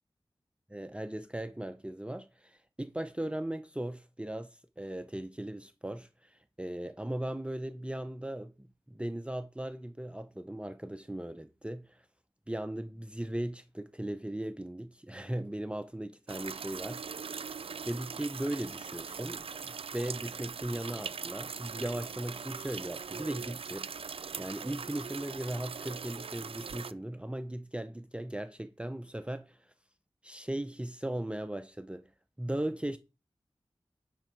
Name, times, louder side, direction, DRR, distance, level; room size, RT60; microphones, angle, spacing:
voice 1, 0.7-12.1 12.5-17.3 17.8-29.7 30.2-32.1 32.4-33.0, right 1 dB, 10° right, 0.7 m, -38 dB
sound 1, 16.3-26.9, right 6 dB, 75° right, 0.4 m, -41 dB
9.8 x 6.2 x 4.6 m
cardioid pair, 40°, 10 cm